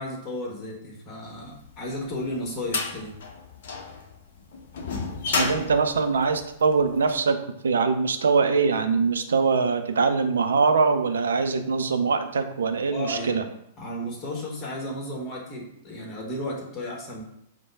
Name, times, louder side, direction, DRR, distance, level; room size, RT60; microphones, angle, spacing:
voice 1, 0.0-3.2 12.9-13.5 13.8-17.2, left 1 dB, 25° left, -1 dB, 1.3 m, -33 dB
sound 1, 1.7-7.0, left 4 dB, 55° left, 0.7 m, -31 dB
voice 2, 5.4-7.4 7.6-13.4, right 4 dB, 65° right, 7 dB, 0.4 m, -23 dB
4.3 x 2.2 x 4.6 m, 0.74 s
figure-of-eight pair, 100°, 0 cm